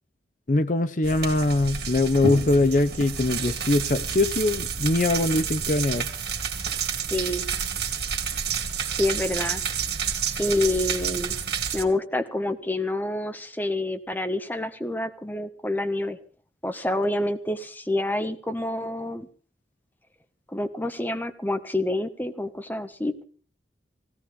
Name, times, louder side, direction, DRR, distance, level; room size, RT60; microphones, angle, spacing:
voice 1, 0.5-6.1, left 2 dB, 45° left, 0.7 m, -22 dB
sound 1, 1.0-11.8, right 6 dB, 65° right, 2.6 m, -29 dB
voice 2, 7.1-7.5 8.9-9.6 10.4-11.4 11.7-16.2 16.6-19.3 20.5-23.2, left 1 dB, 10° left, 1.3 m, -27 dB
18.5 x 17.0 x 3.7 m
head